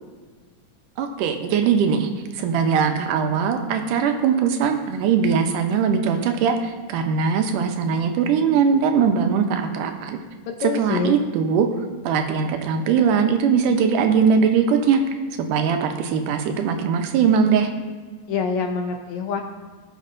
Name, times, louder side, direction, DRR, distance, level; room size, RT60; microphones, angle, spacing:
voice 1, 1.0-10.2 10.6-11.7 12.0-15.0 15.4-17.7, right 6 dB, 80° right, 6 dB, 2.2 m, -20 dB
voice 2, 10.4-11.2 18.3-19.4, left 5 dB, 80° left, 4 dB, 1.6 m, -25 dB
18.0 x 6.4 x 2.5 m, 1.5 s
omnidirectional pair, 3.8 m